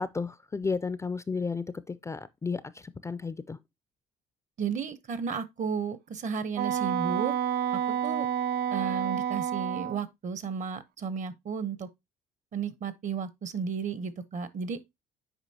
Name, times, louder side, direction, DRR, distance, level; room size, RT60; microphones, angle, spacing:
voice 1, 0.0-3.6, left 4 dB, 15° left, 0.3 m, -33 dB
voice 2, 4.6-7.3 7.9-8.3 8.7-11.9 12.5-14.8, right 6 dB, 45° right, 0.8 m, -33 dB
Wind instrument woodwind instrument, 6.6-10.0, right 9 dB, 70° right, 0.5 m, -29 dB
8.1 x 4.9 x 2.7 m
cardioid pair, 110°, 17 cm